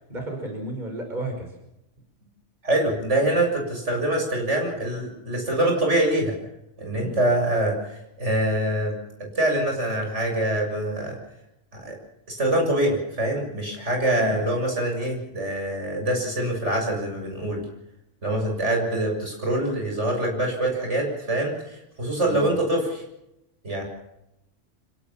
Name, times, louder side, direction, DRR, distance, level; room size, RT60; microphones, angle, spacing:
voice 1, 0.1-1.5 6.9-7.2 14.1-14.4 22.3-22.5, right 1 dB, 40° right, 2 dB, 5.7 m, -33 dB
voice 2, 2.6-6.4 6.8-7.8 8.2-8.9 9.2-11.2 11.7-12.0 12.3-17.6 18.2-23.0 23.6-23.8, right 1 dB, 75° right, 1 dB, 7.5 m, -24 dB
26.5 x 17.5 x 7.3 m, 0.86 s
omnidirectional pair, 1.2 m